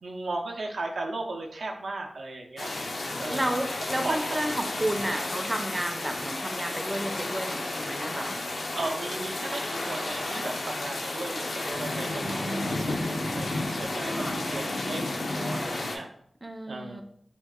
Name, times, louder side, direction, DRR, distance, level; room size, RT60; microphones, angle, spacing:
voice 1, 0.0-2.7 3.2-3.5 4.0-4.2 5.2-5.3 8.7-16.1 16.7-17.0, right 2 dB, 90° right, 2 dB, 0.4 m, -36 dB
sound 1, 2.6-16.0, left 2 dB, 80° left, 0.5 m, -32 dB
voice 2, 3.3-8.3 12.2-13.0 14.0-14.4 16.4-17.0, right 1 dB, 20° right, 5 dB, 0.4 m, -32 dB
2.8 x 2.3 x 3.5 m, 0.67 s
wide cardioid pair, 65°, 0 cm